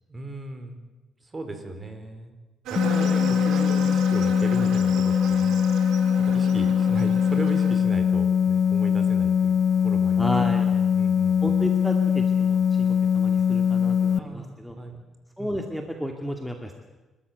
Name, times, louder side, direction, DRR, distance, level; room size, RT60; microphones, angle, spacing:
voice 1, 0.1-0.8 1.2-2.3 2.7-5.6 6.3-9.5 9.8-10.3 10.7-11.6 14.2-15.0 15.4-15.6, right 2 dB, 25° right, 7 dB, 4.5 m, -36 dB
sound 1, 2.7-7.8, right 6 dB, 85° right, 3.4 m, -35 dB
sound 2, 2.8-14.2, left 7 dB, 55° left, 1.0 m, -22 dB
voice 2, 10.2-10.7 11.4-14.8 15.4-16.7, equal, ahead, 3 dB, 2.2 m, -32 dB
28.5 x 13.5 x 8.0 m, 1.2 s
cardioid pair, 90°, 0 cm